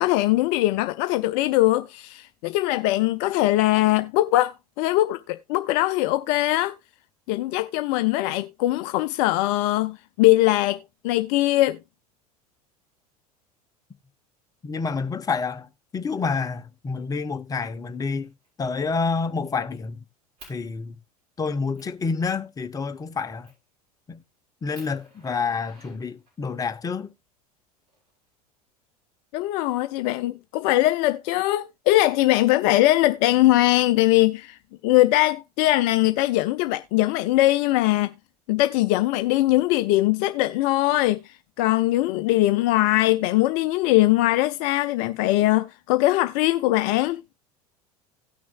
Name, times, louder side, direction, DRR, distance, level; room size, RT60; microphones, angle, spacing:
voice 1, 0.0-6.7 7.3-10.8 11.0-11.8 29.3-34.6 34.8-38.1 38.5-47.2, left 17 dB, 45° left, 0.4 m, -21 dB
voice 2, 14.6-15.7 15.9-18.3 18.6-20.0 20.5-21.0 21.4-23.5 24.1-24.2 24.6-27.1, left 4 dB, 20° left, 0.8 m, -28 dB
Fire, 18.2-18.5 18.9-19.8 20.4-20.6 21.2-21.3 21.8-22.0 23.4-23.7 24.2-24.3 24.7-26.5 27.6-28.5, right 2 dB, 45° right, 6.3 m, -52 dB
17.0 x 6.1 x 2.3 m
figure-of-eight pair, 75°, 20 cm